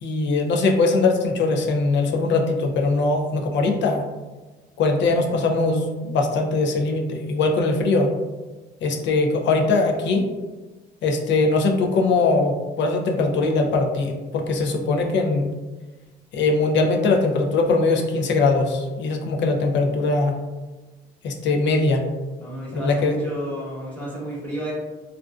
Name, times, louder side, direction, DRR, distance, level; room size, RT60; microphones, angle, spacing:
voice 1, 0.0-4.0 4.8-8.1 8.8-10.2 11.0-15.5 16.3-20.4 21.2-22.0 22.7-23.2, left 3 dB, 65° left, 3 dB, 0.5 m, -21 dB
voice 2, 22.4-24.7, equal, 10° left, -8 dB, 1.0 m, -32 dB
2.4 x 2.2 x 2.3 m, 1.2 s
cardioid pair, 90°, 20 cm